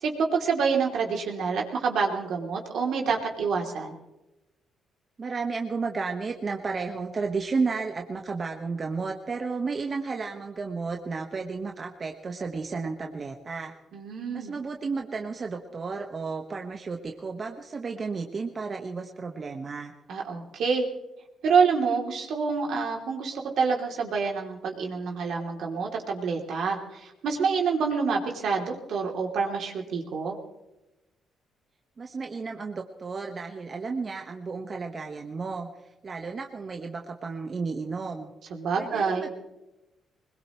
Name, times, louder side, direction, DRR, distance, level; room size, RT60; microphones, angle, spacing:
voice 1, 0.0-4.0 13.9-14.5 20.1-20.9 21.4-30.4 38.5-39.3, right 5 dB, 70° right, 1 dB, 3.0 m, -27 dB
voice 2, 5.2-13.7 14.3-19.9 32.0-35.7 36.0-38.3 38.8-39.3, right 4 dB, 40° right, 2 dB, 1.4 m, -32 dB
21.5 x 21.0 x 3.2 m, 0.99 s
cardioid pair, 90°, 0 cm